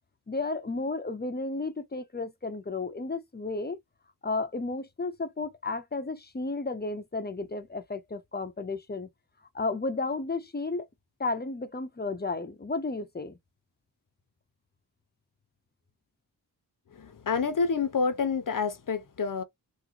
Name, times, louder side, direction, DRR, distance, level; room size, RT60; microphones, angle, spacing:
voice 1, 0.3-3.8 4.2-9.1 9.5-10.9 11.2-13.4, left 3 dB, 25° left, 0.7 m, -33 dB
voice 2, 16.9-19.4, left 5 dB, 55° left, 0.9 m, -28 dB
3.8 x 2.1 x 3.0 m
wide cardioid pair, 75°, 40 cm